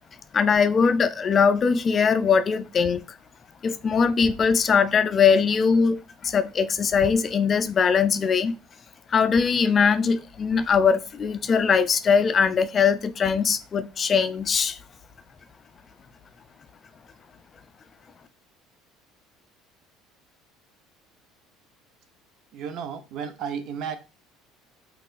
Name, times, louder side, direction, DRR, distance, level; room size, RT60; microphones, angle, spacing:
voice 1, 0.3-3.0 3.6-8.6 9.1-14.8, left 6 dB, 40° left, 0.3 m, -21 dB
voice 2, 22.5-24.0, right 7 dB, 60° right, 0.5 m, -33 dB
3.6 x 2.4 x 2.4 m
hypercardioid pair, 80°, 0 cm